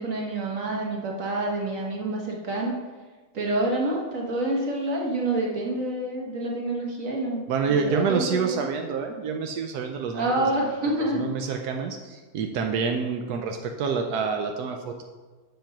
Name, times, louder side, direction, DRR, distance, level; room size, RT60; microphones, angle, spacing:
voice 1, 0.0-2.8 3.3-8.7 10.1-11.3, right 1 dB, 60° right, -1 dB, 1.8 m, -28 dB
voice 2, 7.5-10.5 11.1-15.0, right 5 dB, 90° right, 3 dB, 1.2 m, -27 dB
7.6 x 5.3 x 5.8 m, 1.4 s
omnidirectional pair, 1.6 m